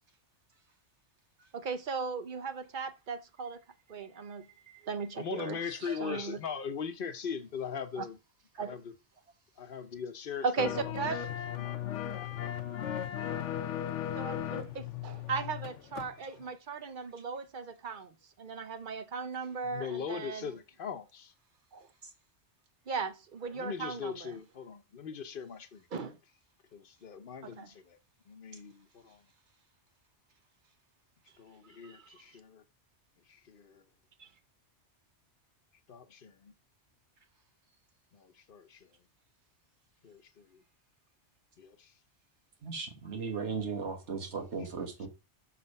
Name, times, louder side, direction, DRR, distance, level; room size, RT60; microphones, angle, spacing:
voice 1, 1.5-3.6 3.9-6.4 8.0-8.1 8.6-8.8 10.4-11.2 14.2-18.1 18.4-20.5 21.7-21.9 22.9-24.3 25.9-26.2 27.4-27.7 31.8-32.1 34.2-34.3, right 5 dB, 50° right, 0.8 m, -37 dB
voice 2, 5.2-8.2 8.6-8.9 9.6-11.1 11.5-11.8 12.1-12.3 19.6-21.3 23.5-25.8 26.7-28.0 28.3-29.2 31.4-32.6 33.3-33.8 35.9-36.5 38.1-38.9 40.0-40.6 41.6-41.9 44.7-45.1, left 6 dB, 50° left, 0.9 m, -40 dB
sound 1, 10.6-16.1 16.4-16.5, left 10 dB, 85° left, 1.1 m, -36 dB
voice 3, 42.6-45.1, right 5 dB, 70° right, 1.7 m, -36 dB
6.5 x 4.1 x 5.3 m
omnidirectional pair, 1.2 m